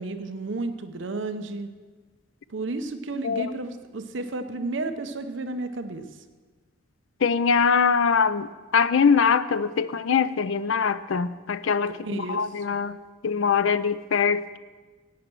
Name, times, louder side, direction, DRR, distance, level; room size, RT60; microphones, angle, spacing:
voice 1, 0.0-1.7 2.5-6.0 11.9-12.5, right 2 dB, 65° right, 9 dB, 0.8 m, -32 dB
voice 2, 3.2-3.5 7.2-13.0 13.2-14.6, left 6 dB, 80° left, 14 dB, 0.5 m, -23 dB
11.5 x 8.7 x 6.1 m, 1.3 s
head